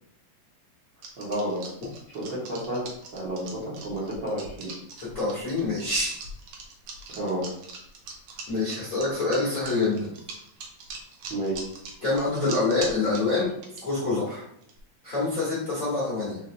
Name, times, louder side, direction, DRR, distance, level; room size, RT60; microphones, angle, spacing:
sound 1, 1.0-13.8 14.6-14.8, right 4 dB, 90° right, 1.4 m, -41 dB
voice 1, 1.2-1.6 2.1-4.7 7.1-7.5 11.3-11.7, right 1 dB, 65° right, -9 dB, 1.1 m, -31 dB
voice 2, 5.0-6.2 8.5-10.1 12.0-13.5 13.8-14.4 15.0-16.4, left 3 dB, 50° left, -9 dB, 0.9 m, -26 dB
4.9 x 4.1 x 2.6 m, 0.73 s
omnidirectional pair, 4.1 m